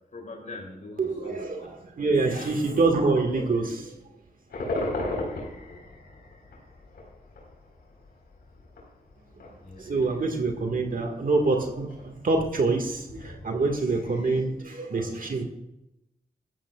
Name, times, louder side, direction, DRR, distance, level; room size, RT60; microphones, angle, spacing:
voice 1, 0.1-1.7 2.3-2.5 3.3-3.4 5.0-5.8 9.6-10.0, left 2 dB, 50° left, 0 dB, 3.0 m, -43 dB
voice 2, 1.0-4.1 9.8-15.4, right 3 dB, 60° right, 3 dB, 1.7 m, -26 dB
sound 1, 4.5-14.4, left 2 dB, 85° left, 4.3 m, -38 dB
13.5 x 13.0 x 2.4 m, 0.87 s
cardioid pair, 45°, 16 cm